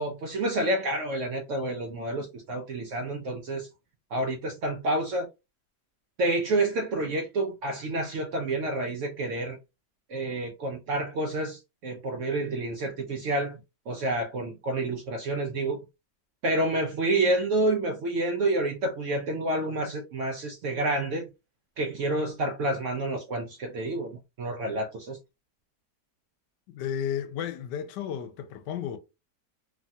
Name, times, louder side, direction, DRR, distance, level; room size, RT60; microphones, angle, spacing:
voice 1, 0.0-3.7 4.1-5.3 6.2-9.6 10.1-13.6 13.9-15.8 16.4-21.3 21.8-25.2, right 2 dB, 70° right, 0.7 m, -29 dB
voice 2, 26.7-29.0, left 9 dB, 85° left, 1.2 m, -33 dB
3.2 x 2.6 x 2.2 m
omnidirectional pair, 1.8 m